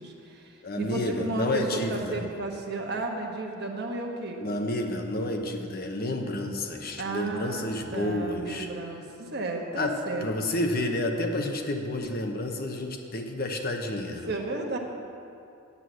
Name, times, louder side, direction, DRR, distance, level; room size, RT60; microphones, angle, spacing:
voice 1, 0.0-4.4 7.0-10.3 14.3-14.8, right 2 dB, 50° right, 1 dB, 1.2 m, -33 dB
voice 2, 0.6-2.2 4.4-8.7 9.7-14.3, left 1 dB, 45° left, 3 dB, 0.9 m, -30 dB
8.3 x 7.9 x 8.2 m, 2.6 s
head